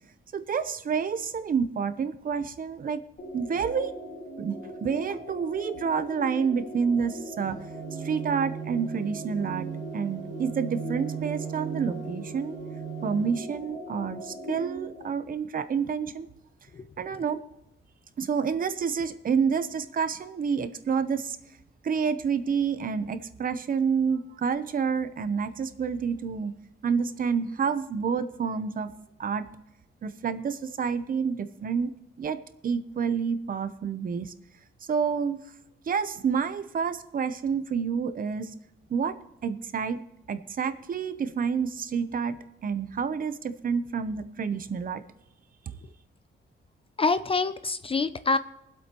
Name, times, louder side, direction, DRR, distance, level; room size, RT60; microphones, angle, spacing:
voice 1, 0.3-3.0 3.3-3.9 4.4-4.5 4.8-7.6 8.0-9.7 9.9-12.6 13.0-16.3 17.0-17.4 18.2-21.4 21.8-26.5 26.8-28.9 29.2-29.5 30.0-31.9 32.2-34.3 34.8-35.4 35.8-38.5 38.9-39.2 39.4-40.0 40.3-45.0, right 6 dB, 40° right, 11 dB, 0.7 m, -28 dB
sound 1, 3.2-15.1, equal, 45° left, 2.0 m, -40 dB
sound 2, 7.4-13.4, right 9 dB, 65° right, 0.9 m, -38 dB
voice 2, 47.0-48.4, left 3 dB, 25° left, 13 dB, 0.4 m, -26 dB
23.0 x 7.9 x 3.0 m, 0.86 s
wide cardioid pair, 175°, 21 cm